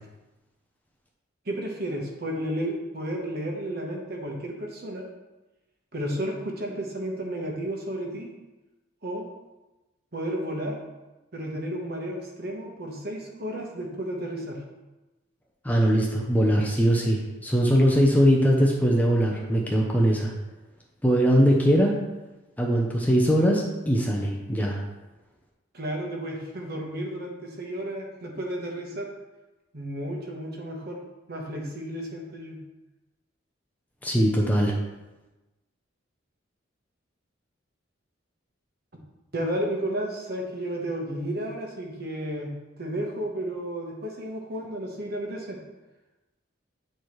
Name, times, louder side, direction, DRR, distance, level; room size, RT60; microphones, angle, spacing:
voice 1, 1.4-5.0 5.9-8.3 9.0-9.3 10.1-10.8 11.3-14.6 25.7-29.1 29.7-31.0 31.3-32.6 39.3-45.6, right 1 dB, 50° right, 0 dB, 1.2 m, -32 dB
voice 2, 15.6-20.3 21.0-22.0 22.6-24.8 34.0-34.7, equal, 10° left, -2 dB, 0.7 m, -21 dB
8.6 x 4.5 x 3.2 m, 1.1 s
head